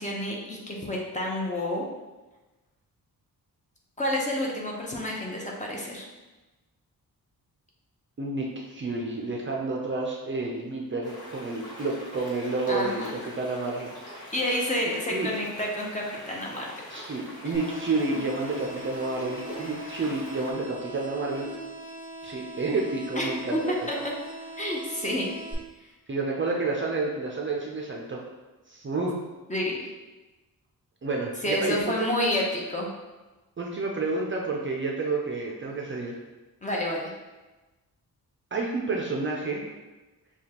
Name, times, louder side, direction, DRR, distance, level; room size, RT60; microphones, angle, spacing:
voice 1, 0.0-1.8 4.0-6.1 12.7-13.1 14.3-16.7 17.4-17.5 23.2-23.6 23.9-24.0 24.6-25.3 29.5-29.8 31.4-32.9 36.6-37.1, left 1 dB, 20° left, -3 dB, 0.7 m, -29 dB
voice 2, 8.2-14.2 15.1-15.3 16.9-21.5 22.2-23.7 26.1-28.2 28.7-29.2 31.0-32.1 33.6-36.2 38.5-39.6, right 3 dB, 30° right, -1 dB, 0.5 m, -30 dB
sound 1, 11.0-20.5, left 1 dB, 70° left, 1.5 m, -44 dB
sound 2, 17.5-25.5, right 2 dB, 45° left, 1.5 m, -41 dB
6.8 x 2.3 x 2.9 m, 1.1 s
wide cardioid pair, 130°, 37 cm